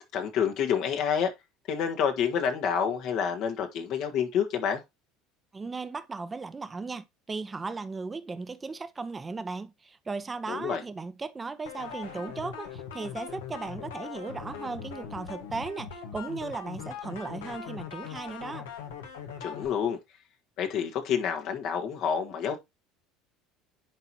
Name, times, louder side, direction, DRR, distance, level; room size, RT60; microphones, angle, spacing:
voice 1, 0.1-1.3 1.7-4.8 10.5-10.8 19.4-20.0 20.6-22.6, left 7 dB, 60° left, 1.5 m, -28 dB
voice 2, 5.5-18.7, right 4 dB, 20° right, 1.0 m, -36 dB
sound 1, 11.7-19.7, left 7 dB, 85° left, 1.6 m, -41 dB
10.5 x 4.0 x 2.9 m
hypercardioid pair, 80°, 0 cm